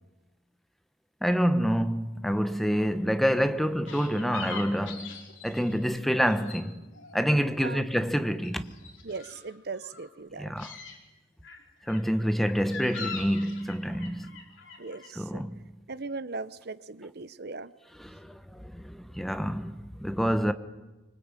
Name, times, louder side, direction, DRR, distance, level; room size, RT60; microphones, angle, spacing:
voice 1, 1.2-6.8 7.1-8.7 10.4-10.7 11.9-14.3 15.2-15.6 18.0-20.5, equal, ahead, 1.3 m, -27 dB
sound 1, 3.8-6.7 6.9-7.8 8.1-10.1 10.5-11.0 11.4-15.1, left 5 dB, 85° left, 5.0 m, -43 dB
voice 2, 9.0-10.5 14.8-15.4 15.9-17.7, right 3 dB, 55° right, 1.0 m, -38 dB
25.0 x 24.5 x 9.1 m
head